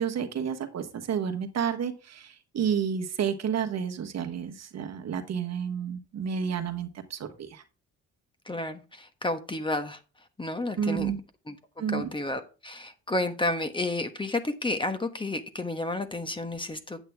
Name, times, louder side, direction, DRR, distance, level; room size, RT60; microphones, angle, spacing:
voice 1, 0.0-7.6 10.8-11.2 11.8-12.1, right 7 dB, 60° right, 1.3 m, -30 dB
voice 2, 8.4-11.1 11.5-17.0, left 2 dB, 15° left, 1.2 m, -31 dB
8.8 x 8.1 x 3.5 m
cardioid pair, 90°, 30 cm